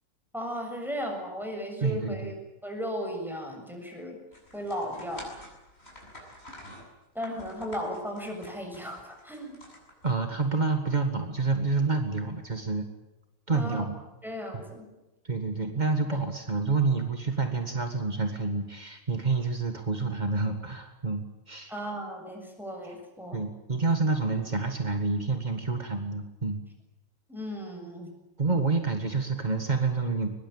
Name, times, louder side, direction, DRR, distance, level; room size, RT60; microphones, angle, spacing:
voice 1, 0.3-2.4 2.6-4.2 4.5-5.3 7.1-9.6 13.5-13.8 14.2-14.9 21.7-23.4 27.3-28.1, equal, ahead, 2 dB, 7.0 m, -36 dB
voice 2, 1.8-2.4 10.0-12.9 13.5-14.0 14.5-14.6 15.2-21.7 23.3-26.6 28.4-30.3, right 3 dB, 35° right, 5 dB, 0.7 m, -28 dB
sound 1, 4.3-10.4, left 1 dB, 15° left, 7.4 m, -48 dB
23.0 x 21.0 x 8.9 m, 0.99 s
omnidirectional pair, 4.0 m